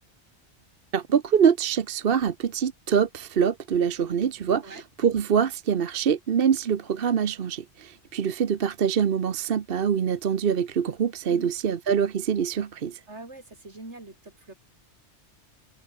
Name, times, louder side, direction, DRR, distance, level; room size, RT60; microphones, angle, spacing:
voice 1, 0.9-13.0, right 7 dB, 55° right, 1.0 m, -24 dB
voice 2, 13.1-14.5, right 2 dB, 75° right, 4.7 m, -43 dB
omnidirectional pair, 1.2 m